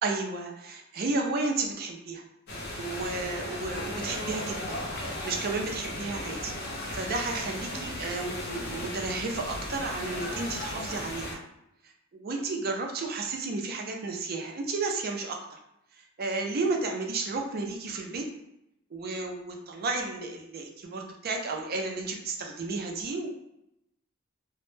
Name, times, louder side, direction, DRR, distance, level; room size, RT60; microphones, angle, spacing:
voice 1, 0.0-2.2 2.8-4.8 5.2-6.5 6.9-11.4 12.1-15.6 16.2-18.3 18.9-23.3, right 3 dB, 50° right, 2 dB, 0.4 m, -32 dB
sound 1, 2.5-11.3, left 1 dB, 50° left, 0.5 m, -36 dB
2.0 x 2.0 x 3.1 m, 0.83 s
head